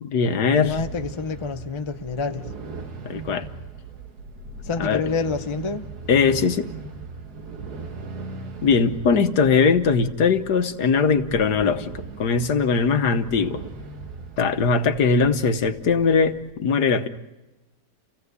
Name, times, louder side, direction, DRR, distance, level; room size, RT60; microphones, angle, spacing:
voice 1, 0.0-0.8 3.0-3.5 4.8-5.0 6.1-6.7 8.6-13.6 14.4-17.1, left 5 dB, 70° left, 9 dB, 1.7 m, -20 dB
voice 2, 0.5-2.4 4.6-5.9, left 4 dB, 25° left, 7 dB, 0.6 m, -28 dB
sound 1, 0.5-16.5, right 3 dB, 65° right, 2.0 m, -39 dB
29.5 x 17.0 x 8.2 m, 1.1 s
omnidirectional pair, 1.8 m